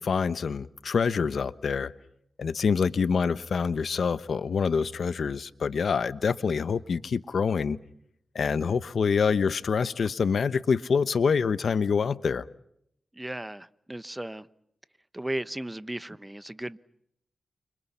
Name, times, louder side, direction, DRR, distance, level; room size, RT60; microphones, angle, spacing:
voice 1, 0.0-1.9 2.4-7.8 8.3-12.5, left 5 dB, 75° left, 1.0 m, -26 dB
voice 2, 13.1-14.5 15.1-16.8, right 1 dB, 15° right, 1.1 m, -35 dB
30.0 x 25.5 x 5.7 m
cardioid pair, 60°, 0 cm